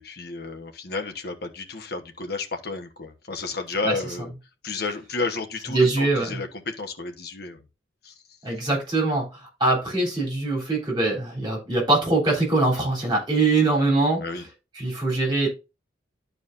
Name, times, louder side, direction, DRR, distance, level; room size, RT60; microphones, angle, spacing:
voice 1, 0.0-4.3 4.6-7.6 8.0-8.1 14.2-14.4, left 3 dB, 55° left, 1.2 m, -32 dB
voice 2, 5.7-6.4 8.4-14.2 14.8-15.5, right 2 dB, 25° right, 3.4 m, -22 dB
11.0 x 4.8 x 2.6 m
head